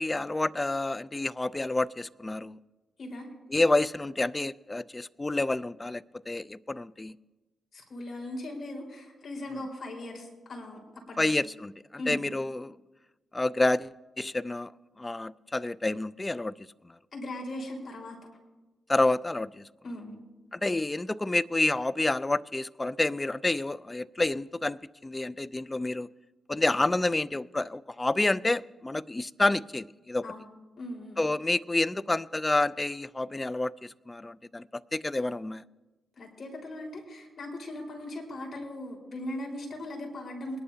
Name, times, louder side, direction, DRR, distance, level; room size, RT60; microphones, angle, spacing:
voice 1, 0.0-2.6 3.5-7.2 9.5-9.6 11.2-11.7 12.1-12.7 13.3-14.7 15.0-16.5 18.9-19.7 20.5-26.1 26.5-30.3 31.2-34.6 34.9-35.6, left 2 dB, 25° left, 0.4 m, -29 dB
voice 2, 7.7-10.8 11.1-11.3 12.0-12.3 17.1-18.1 19.8-20.2 30.2-30.5 30.8-31.2 36.2-40.6, left 1 dB, 55° left, 4.4 m, -39 dB
22.5 x 11.0 x 2.8 m
supercardioid pair, 50°, 0 cm